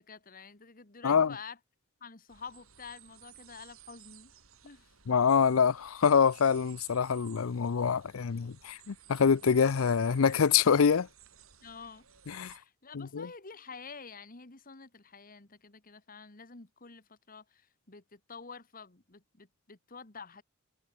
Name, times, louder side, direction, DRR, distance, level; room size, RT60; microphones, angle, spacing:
voice 1, 0.0-1.6 2.0-4.3 4.6-4.9 11.6-12.0 12.5-20.4, left 5 dB, 45° left, 1.8 m, -49 dB
voice 2, 1.0-1.3 5.1-11.1 12.3-12.5 12.9-13.3, left 6 dB, 80° left, 0.5 m, -25 dB
sound 1, 2.3-12.6, right 10 dB, 85° right, 7.8 m, -57 dB
head